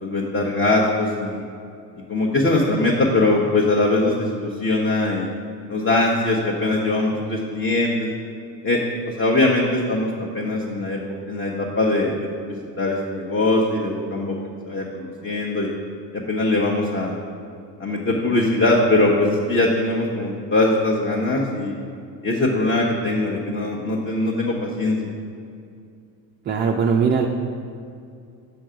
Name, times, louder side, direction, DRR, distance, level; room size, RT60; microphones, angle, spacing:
voice 1, 0.0-1.4 2.1-5.3 5.7-8.1 8.6-8.8 9.2-11.0 11.3-14.4 14.7-15.7 16.1-17.2 17.8-21.7 22.2-25.1, left 2 dB, 20° left, -3 dB, 1.0 m, -21 dB
voice 2, 26.5-27.3, right 6 dB, 25° right, 1 dB, 0.4 m, -20 dB
6.8 x 4.5 x 5.0 m, 2.4 s
hypercardioid pair, 60°, 50 cm